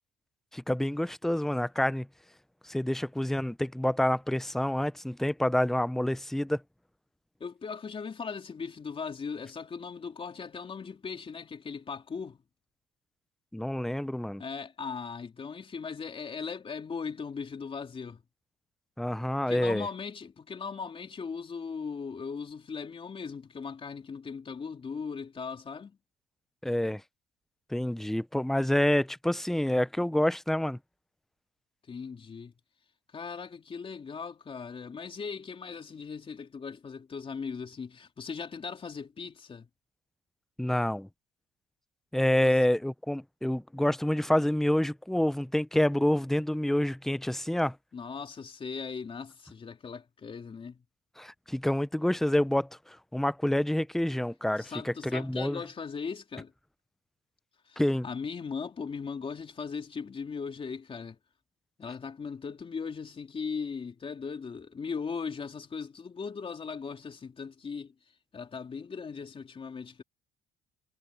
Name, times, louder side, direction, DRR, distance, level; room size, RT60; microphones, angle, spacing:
voice 1, 0.5-2.1 2.7-6.6 13.5-14.4 19.0-19.9 26.6-27.0 27.7-30.8 40.6-41.1 42.1-47.7 51.2-52.7 53.1-55.6 57.8-58.1, left 1 dB, ahead, 0.6 m, -27 dB
voice 2, 7.4-12.4 14.4-18.2 19.5-26.0 31.9-32.5 33.1-39.7 42.4-42.6 47.9-50.8 54.6-56.5 57.7-61.2 61.8-67.9 68.3-70.0, left 5 dB, 30° left, 3.5 m, -38 dB
cardioid pair, 110°, 17 cm